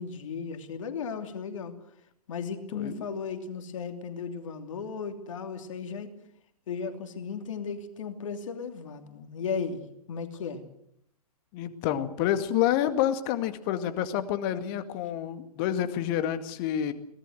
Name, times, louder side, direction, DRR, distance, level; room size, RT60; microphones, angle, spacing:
voice 1, 0.0-1.7 2.3-6.1 6.7-9.8 10.1-10.6, left 6 dB, 55° left, 6 dB, 3.0 m, -35 dB
voice 2, 2.7-3.1 11.5-16.9, left 11 dB, 35° left, 10 dB, 2.1 m, -28 dB
24.0 x 18.5 x 7.9 m, 0.75 s
figure-of-eight pair, 115°, 19 cm